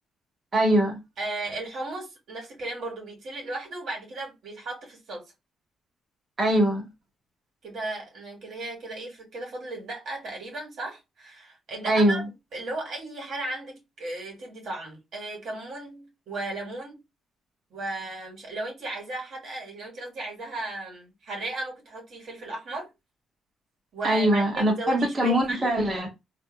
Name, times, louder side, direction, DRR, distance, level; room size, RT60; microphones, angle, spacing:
voice 1, 0.5-1.0 6.4-6.9 11.9-12.3 24.0-26.1, right 1 dB, 40° right, 1.0 m, -22 dB
voice 2, 1.2-5.2 7.6-12.3 12.5-17.0 17.7-22.9 23.9-25.7, right 2 dB, 65° right, 1.4 m, -35 dB
3.8 x 2.6 x 2.2 m
cardioid pair, 90°, 0 cm